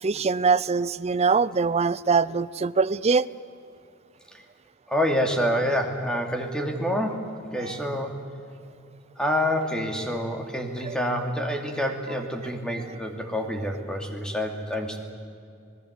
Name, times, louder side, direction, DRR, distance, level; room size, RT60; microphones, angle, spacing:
voice 1, 0.0-3.3 7.6-7.7 10.8-10.9, right 5 dB, 30° right, 16 dB, 0.5 m, -23 dB
voice 2, 4.9-8.2 9.2-15.0, equal, 5° left, 3 dB, 2.7 m, -27 dB
26.5 x 19.5 x 8.3 m, 2.5 s
head